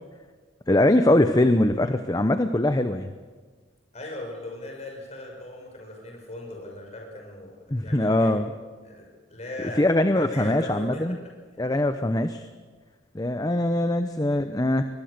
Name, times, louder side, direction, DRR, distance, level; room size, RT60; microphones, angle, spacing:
voice 1, 0.7-3.1 7.7-8.5 9.8-11.2 11.6-12.5 13.1-14.8, left 1 dB, 20° left, 9 dB, 0.8 m, -22 dB
voice 2, 3.9-8.4 8.8-11.3, left 1 dB, 35° left, 1 dB, 6.3 m, -39 dB
22.0 x 20.5 x 6.7 m, 1.4 s
head